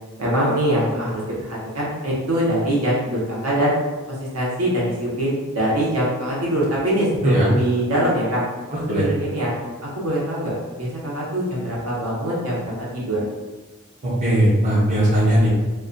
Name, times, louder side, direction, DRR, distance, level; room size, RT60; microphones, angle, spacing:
voice 1, 0.2-1.1 1.4-3.7 4.1-8.4 8.9-9.5 9.8-12.6 12.9-13.2, right 1 dB, 75° right, -6 dB, 0.8 m, -23 dB
voice 2, 8.7-9.0 14.0-15.5, right 1 dB, 35° right, -7 dB, 0.6 m, -18 dB
2.3 x 2.2 x 2.5 m, 1.2 s
head